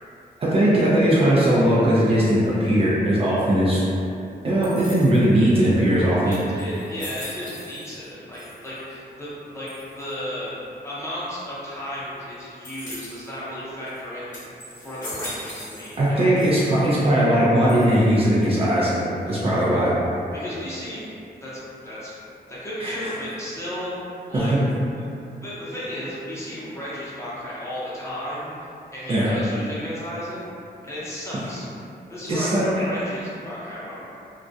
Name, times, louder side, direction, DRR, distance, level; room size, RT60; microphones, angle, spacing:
voice 1, 0.4-3.8 4.4-6.4 16.0-19.9 22.8-22.9 24.3-24.6 29.1-29.3 32.3-32.6, right 1 dB, 35° right, -8 dB, 0.4 m, -19 dB
sound 1, 4.6-5.4 5.9-6.0 6.3-8.1 8.3-8.9 9.7-10.1 12.6-13.3 13.9-14.0 14.3-16.1 16.3-17.0 17.7-18.3, left 1 dB, 45° left, 0.8 m, -40 dB
voice 2, 6.2-10.6 10.8-16.5 19.3-19.8 20.3-21.0 21.4-22.1 22.5-24.0 24.3-24.5 25.4-28.5 28.9-30.5 30.8-31.7 32.1-34.1, equal, 15° left, -10 dB, 0.7 m, -34 dB
2.3 x 2.0 x 2.6 m, 2.7 s
wide cardioid pair, 135°, 17 cm